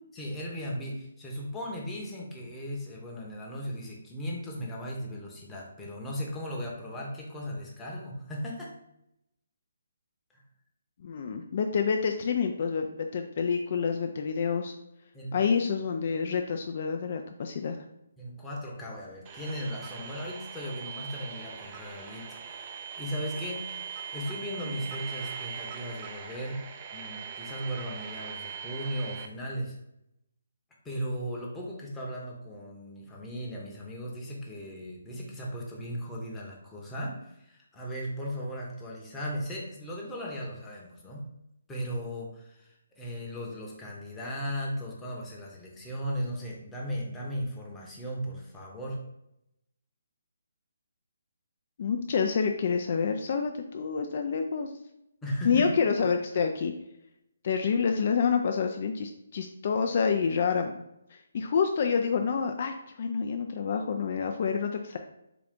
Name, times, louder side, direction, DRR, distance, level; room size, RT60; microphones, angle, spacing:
voice 1, 0.1-8.7 15.1-15.4 18.2-26.6 26.9-29.8 30.8-41.3 41.7-49.0 55.2-55.7, equal, 10° left, -4 dB, 0.8 m, -37 dB
voice 2, 11.0-14.7 15.3-17.8 51.8-54.7 55.4-56.7 57.4-60.7 61.1-65.0, left 6 dB, 50° left, 5 dB, 0.3 m, -28 dB
sound 1, 19.2-29.3, right 7 dB, 30° right, 0.4 m, -41 dB
3.8 x 2.3 x 3.5 m, 0.83 s
figure-of-eight pair, 150°, 0 cm